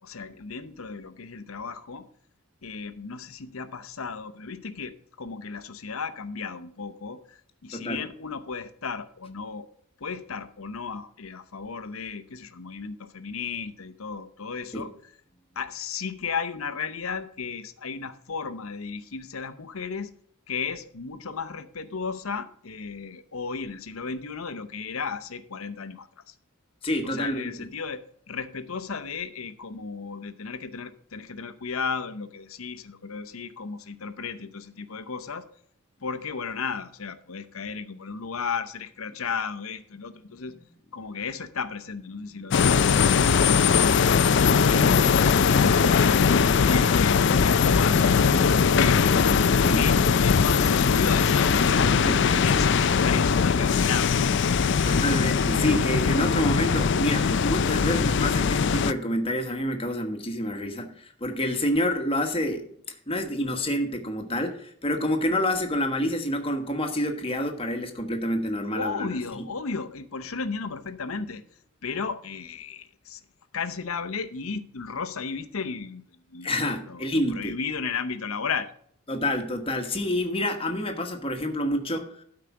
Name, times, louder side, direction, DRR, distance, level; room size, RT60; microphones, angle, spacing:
voice 1, 0.0-2.0 2.6-9.7 10.0-15.1 15.6-20.1 20.5-26.3 27.0-35.5 36.0-40.5 40.9-45.0 45.4-49.5 49.7-51.9 52.3-54.6 68.7-71.4 71.8-73.2 73.5-76.5 76.9-78.7, left 5 dB, 80° left, 0.8 m, -34 dB
voice 2, 26.8-27.5 42.3-42.4 49.6-49.8 51.8-52.6 54.8-62.7 63.1-69.5 76.4-77.5 79.1-82.2, left 1 dB, 25° left, 1.3 m, -28 dB
sound 1, 42.5-58.9, left 6 dB, 55° left, 0.4 m, -21 dB
12.5 x 4.9 x 5.9 m
head